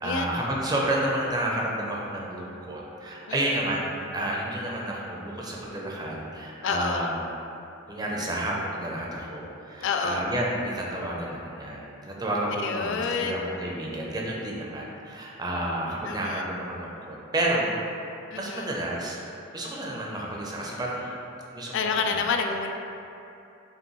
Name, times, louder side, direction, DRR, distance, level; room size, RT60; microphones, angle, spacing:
voice 1, 0.0-7.2 7.9-17.7 18.4-19.2 19.5-21.2 21.5-22.2, right 1 dB, 20° right, -3 dB, 0.5 m, -30 dB
voice 2, 6.6-7.1 9.8-10.3 12.5-13.4 16.0-16.4 18.3-18.7 21.7-22.7, left 5 dB, 65° left, 4 dB, 0.3 m, -28 dB
5.2 x 2.6 x 3.1 m, 2.7 s
head